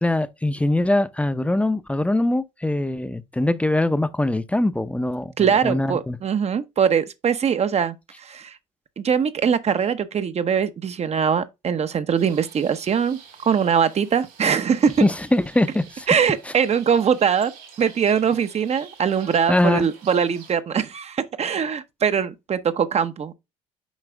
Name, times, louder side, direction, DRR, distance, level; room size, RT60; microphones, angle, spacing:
voice 1, 0.0-6.2 15.0-16.1 19.5-19.9, left 1 dB, 5° left, 0.7 m, -22 dB
voice 2, 5.4-8.6 9.0-14.9 16.1-17.5 17.8-23.3, right 7 dB, 40° right, 0.8 m, -22 dB
sound 1, 12.2-20.6, right 7 dB, 75° right, 3.4 m, -48 dB
7.2 x 4.9 x 3.4 m
hypercardioid pair, 60°, 17 cm